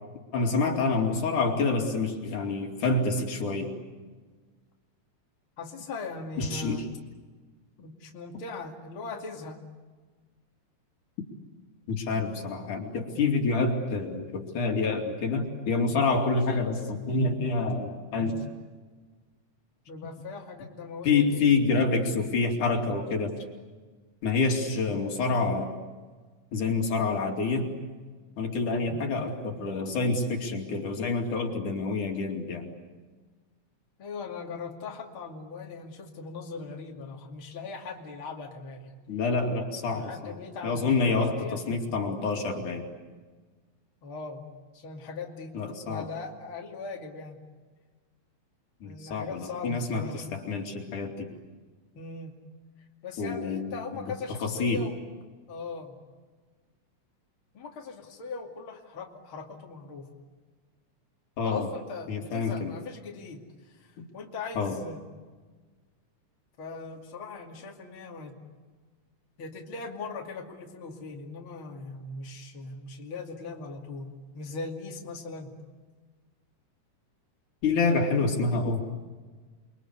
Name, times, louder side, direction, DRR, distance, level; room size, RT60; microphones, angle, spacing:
voice 1, 0.3-3.7 6.4-6.8 11.9-18.4 21.0-23.3 24.2-25.7 26.5-27.7 28.4-32.7 39.1-40.3 40.6-42.9 45.5-46.1 48.8-51.3 53.2-54.0 54.4-54.8 61.4-61.7 62.1-62.7 64.0-64.1 64.6-64.8 77.6-78.8, left 3 dB, 70° left, 2 dB, 4.2 m, -27 dB
voice 2, 5.6-6.9 7.8-9.6 19.9-21.9 28.9-29.1 34.0-39.0 39.9-41.8 44.0-44.4 44.7-45.5 45.8-47.4 48.8-50.3 51.9-52.4 53.0-55.0 55.5-56.0 57.5-60.1 61.4-65.0 66.6-68.4 69.4-75.5 77.8-78.3, left 4 dB, 40° left, 0 dB, 3.1 m, -40 dB
29.5 x 23.5 x 8.3 m, 1.4 s
omnidirectional pair, 3.6 m